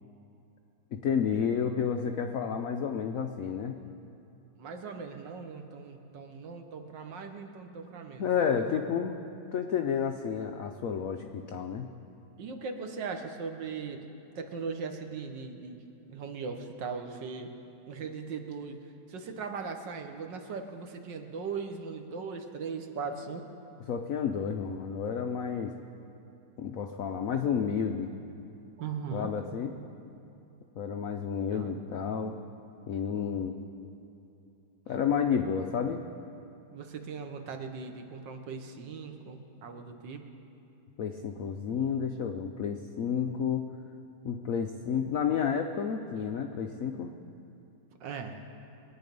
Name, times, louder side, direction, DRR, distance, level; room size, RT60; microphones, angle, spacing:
voice 1, 0.9-3.8 8.2-9.2 9.5-11.9 23.9-25.7 26.6-28.1 29.1-29.7 30.8-32.4 32.9-33.6 34.9-36.0 41.0-43.6 44.2-47.1, left 7 dB, 85° left, 5 dB, 0.7 m, -30 dB
voice 2, 4.6-8.8 12.4-14.1 14.3-17.5 17.9-23.5 28.8-29.3 31.5-31.8 36.7-40.3 48.0-48.4, right 5 dB, 65° right, 5 dB, 1.6 m, -39 dB
22.5 x 9.3 x 5.3 m, 2.8 s
omnidirectional pair, 2.2 m